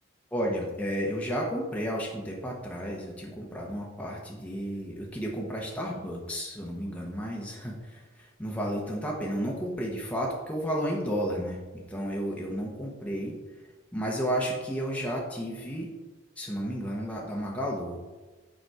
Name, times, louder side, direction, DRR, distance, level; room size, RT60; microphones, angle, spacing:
voice 1, 0.3-11.6 11.9-13.3 13.9-15.9 16.4-18.0, equal, 5° left, -2 dB, 0.9 m, -32 dB
6.7 x 5.1 x 4.8 m, 1.2 s
head